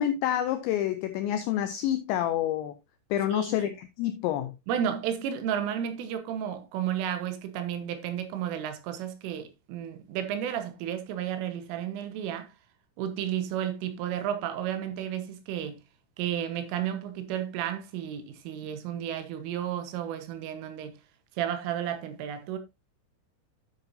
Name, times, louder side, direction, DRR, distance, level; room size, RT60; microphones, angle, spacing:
voice 1, 0.0-2.7 3.1-4.5, left 11 dB, 90° left, 2.5 m, -28 dB
voice 2, 3.3-3.7 4.7-12.5 13.0-15.8 16.2-21.0 21.4-22.6, right 9 dB, 75° right, 3.6 m, -32 dB
10.0 x 8.0 x 2.7 m
omnidirectional pair, 5.9 m